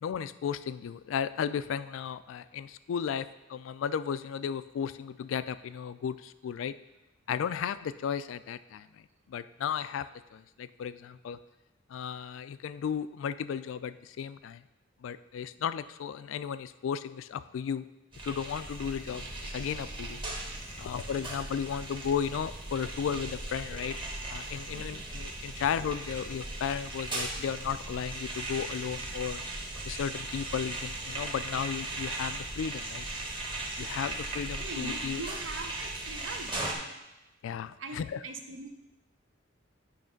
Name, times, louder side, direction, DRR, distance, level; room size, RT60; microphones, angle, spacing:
voice 1, 0.0-6.7 7.3-8.9 9.3-10.1 10.3-11.4 11.9-14.6 15.0-17.8 18.2-20.2 20.8-24.0 24.3-29.4 29.9-33.0 33.8-35.2 37.4-38.2, left 7 dB, 80° left, 14 dB, 0.3 m, -34 dB
sound 1, 18.1-36.7, right 2 dB, 25° right, 1.2 m, -38 dB
voice 2, 20.8-21.3 24.4-25.6 29.6-29.7 30.1-30.2 33.4-33.6 34.6-36.6 37.8-38.7, right 3 dB, 70° right, 6 dB, 0.7 m, -44 dB
8.6 x 3.2 x 5.1 m, 0.97 s
head